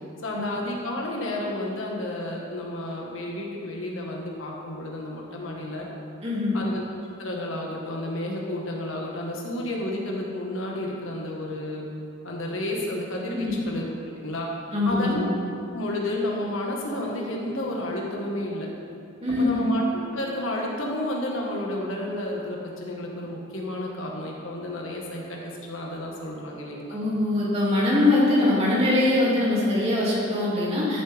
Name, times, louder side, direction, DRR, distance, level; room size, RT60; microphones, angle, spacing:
voice 1, 0.2-5.9 6.5-6.8 7.2-11.8 12.2-14.5 14.8-15.3 15.7-18.7 19.4-27.0, left 1 dB, 75° left, -2 dB, 1.6 m, -31 dB
voice 2, 6.2-6.6 13.3-13.6 14.7-15.2 19.2-19.6 26.9-31.0, left 2 dB, 30° right, -7 dB, 2.5 m, -22 dB
13.5 x 7.6 x 3.5 m, 2.6 s
head